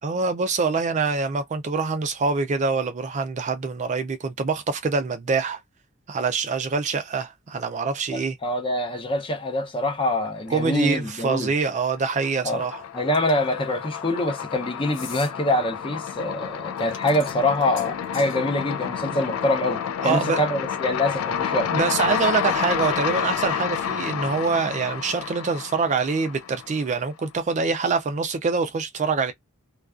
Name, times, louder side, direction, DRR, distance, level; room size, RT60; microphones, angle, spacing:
voice 1, 0.0-5.6 6.1-8.4 10.5-12.8 20.0-20.4 21.7-29.3, right 4 dB, 35° right, 0.4 m, -25 dB
voice 2, 8.1-11.5 12.4-12.6 12.9-21.7, left 1 dB, 25° left, 0.6 m, -25 dB
sound 1, 10.7-11.5 11.8-26.9, left 8 dB, 80° left, 0.4 m, -30 dB
sound 2, 13.1-13.5 14.9-15.3 16.8-18.4, left 6 dB, 60° left, 0.8 m, -41 dB
2.3 x 2.3 x 2.3 m
head